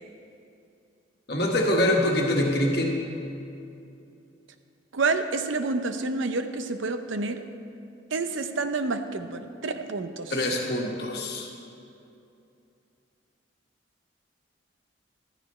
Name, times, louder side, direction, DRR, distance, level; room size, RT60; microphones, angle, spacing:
voice 1, 1.3-3.0 10.3-11.5, left 1 dB, 55° left, 0 dB, 1.5 m, -24 dB
voice 2, 4.9-7.4 8.1-10.3, right 3 dB, 80° right, 8 dB, 0.7 m, -28 dB
14.0 x 13.5 x 3.2 m, 2.7 s
head